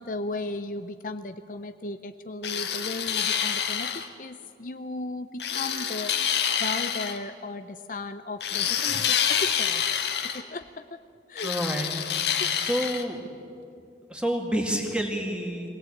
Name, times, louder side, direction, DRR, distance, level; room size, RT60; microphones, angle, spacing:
voice 1, 0.0-6.2 6.6-10.9 11.3-11.5 12.4-12.5, left 2 dB, 50° left, 10 dB, 0.6 m, -36 dB
sound 1, 2.4-4.1 5.4-7.2 8.4-10.4 11.4-13.0, left 8 dB, 75° left, 1.6 m, -27 dB
voice 2, 11.4-11.9 12.6-13.2 14.1-15.7, equal, 5° right, 2 dB, 2.3 m, -28 dB
23.0 x 18.0 x 8.7 m, 2.5 s
head